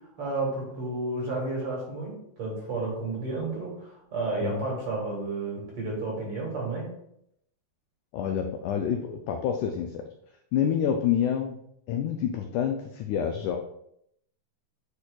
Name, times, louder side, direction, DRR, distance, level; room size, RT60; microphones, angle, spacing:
voice 1, 0.2-6.9, right 3 dB, 55° right, -2 dB, 1.9 m, -32 dB
voice 2, 8.1-10.0 10.5-11.6 11.9-13.6, left 8 dB, 85° left, 4 dB, 1.7 m, -27 dB
9.7 x 4.3 x 2.3 m, 0.74 s
omnidirectional pair, 4.0 m